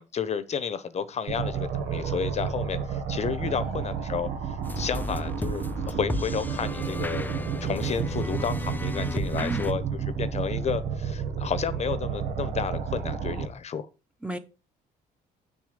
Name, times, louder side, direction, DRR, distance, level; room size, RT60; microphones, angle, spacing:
voice 1, 0.0-7.3 7.6-9.8 10.2-13.9, left 7 dB, 40° left, 1.0 m, -31 dB
sound 1, 1.3-13.5, right 7 dB, 90° right, 1.9 m, -31 dB
voice 2, 3.4-3.9 9.4-9.7 14.2-14.4, right 1 dB, 5° right, 1.0 m, -35 dB
sound 2, 4.6-9.7, left 2 dB, 10° left, 0.6 m, -35 dB
7.8 x 6.5 x 5.2 m
cardioid pair, 110°, 17 cm